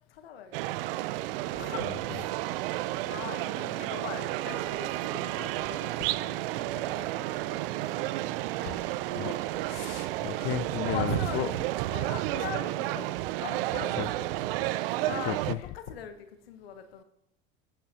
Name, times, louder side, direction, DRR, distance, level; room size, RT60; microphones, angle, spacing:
voice 1, 0.1-0.8 1.5-2.3 3.1-8.2 8.6-9.1 9.8-9.9 10.8-11.4 11.9-14.5 15.0-15.4 15.7-17.0, left 8 dB, 85° left, 1.0 m, -42 dB
sound 1, 0.5-15.5, right 16 dB, 75° right, 0.5 m, -31 dB
voice 2, 9.6-11.5 14.0-14.1 15.3-15.6, left 16 dB, 50° left, 0.4 m, -34 dB
19.5 x 8.8 x 2.8 m
hypercardioid pair, 85°, 29 cm